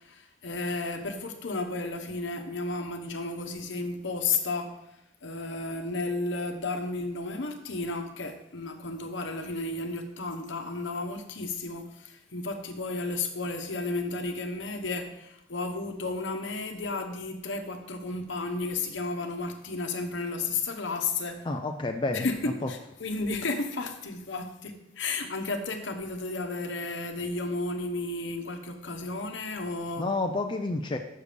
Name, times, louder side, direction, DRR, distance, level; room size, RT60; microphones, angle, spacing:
voice 1, 0.0-4.7 5.2-21.5 22.1-30.1, left 3 dB, 75° left, 5 dB, 1.0 m, -33 dB
voice 2, 21.5-22.7 30.0-31.0, left 2 dB, 25° left, 4 dB, 0.4 m, -30 dB
6.7 x 6.5 x 5.1 m, 0.82 s
head